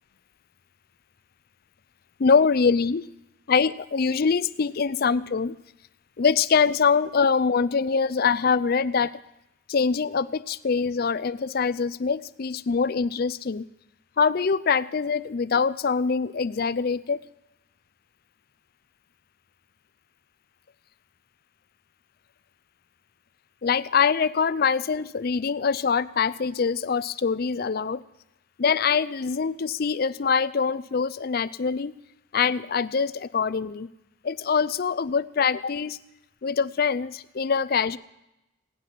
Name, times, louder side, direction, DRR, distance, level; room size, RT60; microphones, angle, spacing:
voice 1, 2.2-3.1 3.5-5.6 6.2-9.1 9.7-13.7 14.2-17.2 23.6-28.0 28.6-32.0 32.3-33.9 34.2-36.0 36.4-38.0, left 5 dB, 50° left, 16 dB, 0.4 m, -24 dB
18.0 x 9.8 x 6.0 m, 0.92 s
head